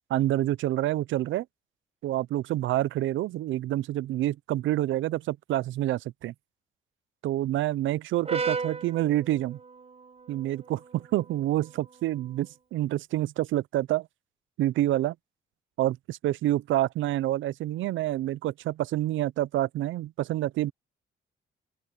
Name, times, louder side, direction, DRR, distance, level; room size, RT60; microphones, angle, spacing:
voice 1, 0.1-1.5 2.0-6.3 7.2-9.6 10.3-14.1 14.6-15.2 15.8-20.7, right 14 dB, 80° right, 0.6 m, -27 dB
Brass instrument, 8.2-12.5, right 4 dB, 30° right, 4.3 m, -37 dB
open air
cardioid pair, 90°, 20 cm